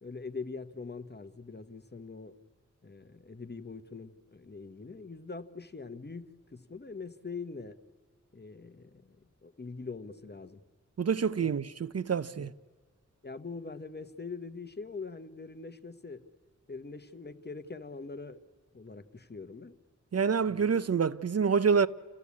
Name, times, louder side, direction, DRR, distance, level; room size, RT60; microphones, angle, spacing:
voice 1, 0.0-2.3 2.8-7.8 8.3-9.2 9.4-10.6 11.4-11.5 12.3-12.5 13.2-16.2 16.7-18.4 18.7-19.8 20.5-20.6, left 4 dB, 35° left, 1.0 m, -43 dB
voice 2, 11.0-12.5 20.1-21.9, right 6 dB, 55° right, 0.6 m, -27 dB
28.5 x 15.5 x 8.4 m
wide cardioid pair, 85°, 29 cm